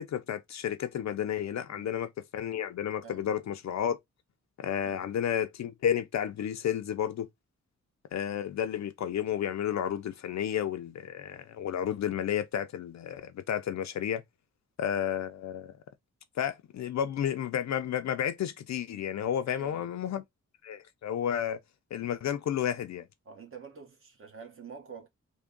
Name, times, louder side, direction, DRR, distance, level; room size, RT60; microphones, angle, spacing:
voice 1, 0.0-4.0 4.6-7.3 8.1-14.2 14.8-15.7 16.4-20.2 20.6-21.6 21.9-23.0, left 9 dB, 65° left, 0.4 m, -32 dB
voice 2, 19.5-19.9 23.2-25.1, right 5 dB, 45° right, 1.0 m, -47 dB
3.4 x 2.2 x 3.7 m
wide cardioid pair, 155°, 30 cm